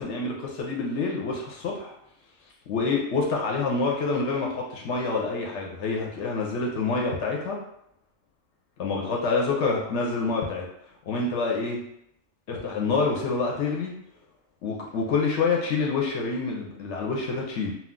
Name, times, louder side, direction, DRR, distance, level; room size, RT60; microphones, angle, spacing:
voice 1, 0.0-1.9 2.7-7.6 8.8-10.7 11.1-11.8 12.5-13.9 14.6-17.7, left 4 dB, 65° left, -1 dB, 0.8 m, -27 dB
2.3 x 2.3 x 3.6 m, 0.76 s
omnidirectional pair, 1.4 m